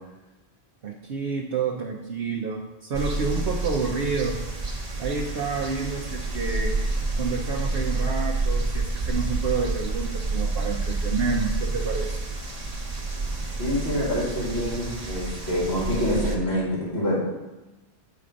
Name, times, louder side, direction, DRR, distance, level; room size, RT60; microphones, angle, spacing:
voice 1, 0.8-4.4 5.0-6.7 7.1-12.2, right 4 dB, 65° right, 0 dB, 0.9 m, -29 dB
sound 1, 2.9-16.4, right 3 dB, 40° right, 1.0 m, -29 dB
voice 2, 13.6-17.2, equal, 75° left, -7 dB, 2.4 m, -26 dB
8.0 x 4.3 x 5.0 m, 1.1 s
omnidirectional pair, 1.1 m